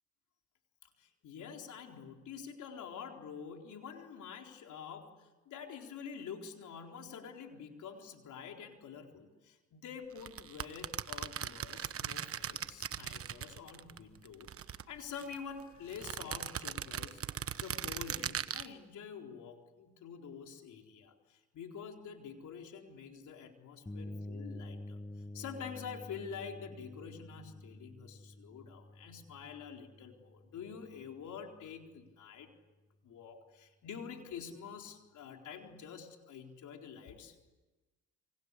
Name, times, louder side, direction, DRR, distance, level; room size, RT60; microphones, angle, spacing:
voice 1, 1.0-17.2 17.6-25.0 25.3-32.5 33.0-37.3, left 6 dB, 75° left, 3 dB, 4.2 m, -47 dB
sound 1, 10.2-14.0 14.2-15.4 15.9-18.7, right 9 dB, 50° right, 1.1 m, -39 dB
sound 2, 23.9-31.6, left 1 dB, 10° left, 1.1 m, -48 dB
29.5 x 24.5 x 8.3 m, 1.2 s
cardioid pair, 90°, 30 cm